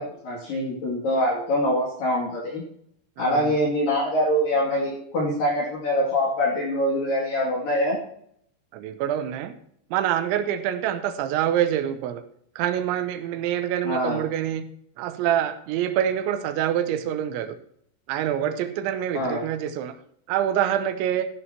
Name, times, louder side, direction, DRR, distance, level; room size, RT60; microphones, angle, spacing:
voice 1, 0.0-2.6 3.2-8.0 13.8-14.3 19.1-19.4, equal, 55° left, -4 dB, 3.8 m, -24 dB
voice 2, 3.2-3.5 8.7-9.5 9.9-12.2 12.6-14.6 15.0-17.6 18.1-19.9 20.3-21.3, right 10 dB, 85° right, 10 dB, 3.1 m, -26 dB
14.0 x 11.0 x 2.9 m, 0.68 s
omnidirectional pair, 5.3 m